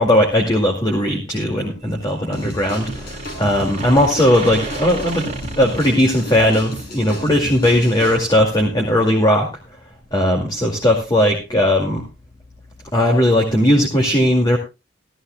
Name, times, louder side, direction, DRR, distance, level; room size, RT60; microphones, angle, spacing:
voice 1, 0.0-5.3 5.6-9.5 10.1-12.0 12.9-14.6, left 1 dB, 20° left, 0 dB, 2.3 m, -17 dB
sound 1, 1.8-2.5 2.8-7.2, right 3 dB, 40° right, 2.7 m, -33 dB
sound 2, 2.3-8.2, equal, 55° left, 5.3 m, -32 dB
16.5 x 14.5 x 2.2 m, 0.26 s
head